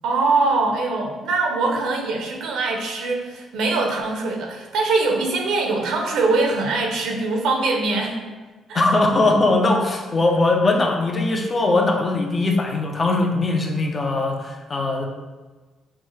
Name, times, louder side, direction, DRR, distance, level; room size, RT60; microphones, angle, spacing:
voice 1, 0.0-8.2 8.7-8.9, right 3 dB, 85° right, 1 dB, 0.7 m, -22 dB
voice 2, 8.7-15.0, left 2 dB, 35° left, 1 dB, 0.7 m, -20 dB
6.0 x 2.3 x 3.1 m, 1.3 s
cardioid pair, 90°, 0 cm